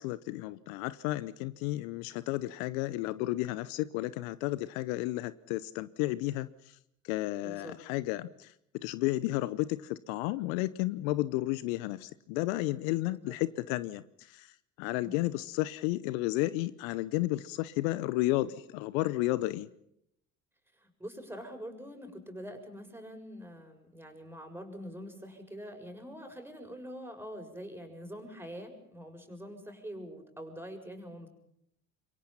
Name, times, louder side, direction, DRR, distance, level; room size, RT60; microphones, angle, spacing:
voice 1, 0.0-6.8 7.0-8.5 8.8-14.5 14.8-19.7, left 18 dB, 70° left, 17 dB, 1.0 m, -32 dB
voice 2, 7.4-7.7 13.1-13.4 15.0-15.2 20.7-31.3, equal, 5° right, 4 dB, 7.1 m, -45 dB
27.5 x 23.5 x 5.7 m, 0.76 s
hypercardioid pair, 60°, 42 cm